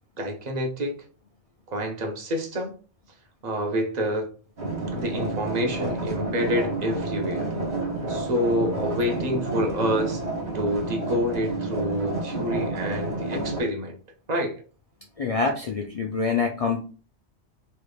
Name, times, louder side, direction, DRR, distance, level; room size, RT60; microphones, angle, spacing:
voice 1, 0.2-0.9 1.7-2.7 3.4-4.3 4.9-7.5 8.1-10.2 10.5-13.9 14.3-14.5, equal, 40° right, 2 dB, 0.8 m, -27 dB
sound 1, 4.6-13.6, right 2 dB, 65° right, 1.3 m, -30 dB
voice 2, 15.2-16.8, left 4 dB, 70° left, 1 dB, 0.3 m, -25 dB
3.4 x 3.2 x 2.3 m, 0.37 s
omnidirectional pair, 1.2 m